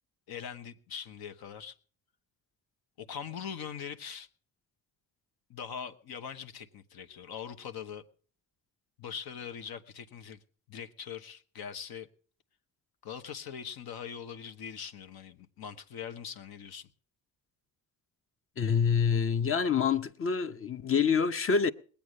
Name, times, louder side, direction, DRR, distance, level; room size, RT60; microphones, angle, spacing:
voice 1, 0.3-1.7 3.0-4.3 5.5-8.0 9.0-10.4 10.7-12.1 13.0-16.9, left 7 dB, 75° left, 1.2 m, -42 dB
voice 2, 18.6-21.7, left 6 dB, 35° left, 0.7 m, -26 dB
20.0 x 8.7 x 6.5 m
cardioid pair, 95°, 37 cm